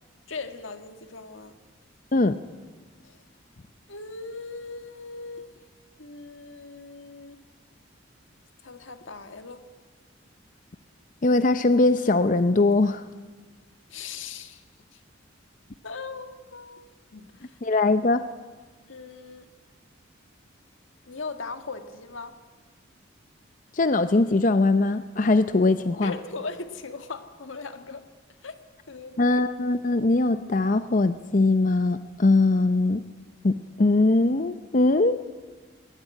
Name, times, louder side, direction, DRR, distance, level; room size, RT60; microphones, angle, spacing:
voice 1, 0.3-1.6 3.0-3.2 3.9-5.6 6.0-7.4 8.6-9.6 13.9-14.6 14.9-15.0 15.8-17.6 18.9-19.5 21.0-22.4 26.0-28.0 28.4-28.6 28.9-29.3, left 4 dB, 85° left, 8 dB, 1.7 m, -39 dB
voice 2, 11.2-13.0 17.6-18.2 23.7-26.1 29.2-33.0 33.4-35.2, left 2 dB, 40° left, 11 dB, 0.6 m, -21 dB
21.0 x 18.5 x 9.1 m, 1.4 s
head